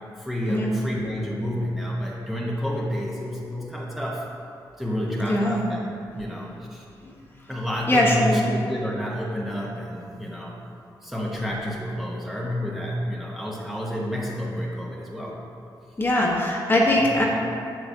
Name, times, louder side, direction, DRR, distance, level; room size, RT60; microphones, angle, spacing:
voice 1, 0.2-4.3 4.8-5.9 6.1-6.8 7.5-10.6 11.0-15.4 17.0-17.2, equal, 5° right, -4 dB, 1.1 m, -29 dB
voice 2, 5.2-5.6 7.9-8.4 16.0-17.3, left 1 dB, 25° left, -3 dB, 1.1 m, -21 dB
7.7 x 5.9 x 2.7 m, 2.4 s
cardioid pair, 75°, 8 cm